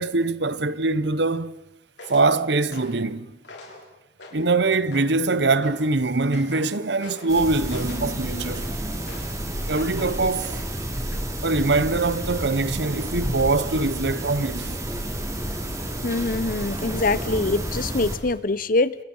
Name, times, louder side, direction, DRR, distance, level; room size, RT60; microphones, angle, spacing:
voice 1, 0.0-1.5 2.1-3.3 4.3-8.7 9.7-10.6 11.4-14.8, right 3 dB, 65° right, 1.0 m, -23 dB
sound 1, 2.0-2.3 2.7-3.0 3.4-3.8 4.2-4.5 4.9-5.2 5.6-5.9 6.3-6.7 7.0-7.3 7.7-9.4 9.7-10.0 10.4-10.8 11.1-11.3, left 2 dB, 75° left, 7.0 m, -43 dB
sound 2, 7.3-18.2, right 1 dB, 15° right, 4.0 m, -30 dB
voice 2, 16.0-19.0, left 3 dB, 50° left, 0.9 m, -24 dB
29.5 x 29.5 x 5.6 m
head